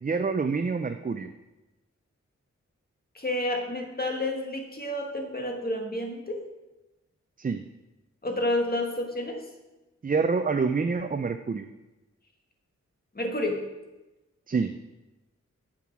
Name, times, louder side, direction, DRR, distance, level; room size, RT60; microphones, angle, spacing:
voice 1, 0.0-1.3 7.4-7.6 10.0-11.7 14.5-14.7, right 4 dB, 30° right, 8 dB, 0.4 m, -27 dB
voice 2, 3.1-6.4 8.2-9.4 13.1-13.6, left 1 dB, 30° left, 2 dB, 1.6 m, -30 dB
7.5 x 7.5 x 6.1 m, 1.1 s
wide cardioid pair, 95°, 29 cm